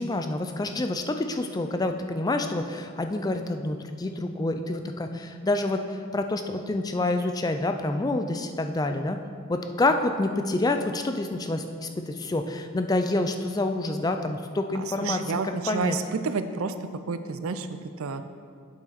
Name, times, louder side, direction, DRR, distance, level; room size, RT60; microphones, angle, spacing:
voice 1, 0.0-5.8 6.1-9.2 9.5-15.2 15.7-16.0, left 2 dB, 20° left, 6 dB, 0.4 m, -27 dB
voice 2, 14.7-16.7 17.1-18.2, right 4 dB, 90° right, 10 dB, 0.5 m, -30 dB
8.5 x 6.6 x 4.1 m, 2.3 s
head